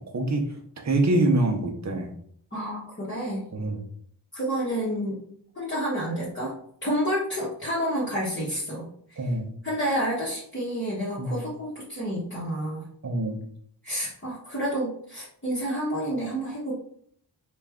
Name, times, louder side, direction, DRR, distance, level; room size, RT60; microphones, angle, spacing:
voice 1, 0.1-0.5 0.8-2.1 3.5-3.8 9.2-9.5 11.2-11.4 13.0-13.4, right 2 dB, 40° right, 3 dB, 0.7 m, -25 dB
voice 2, 2.5-3.5 4.3-5.2 5.5-6.5 6.8-9.2 9.6-12.8 13.8-16.7, equal, 25° left, -8 dB, 1.0 m, -29 dB
3.3 x 2.4 x 3.4 m, 0.64 s
wide cardioid pair, 110°, 43 cm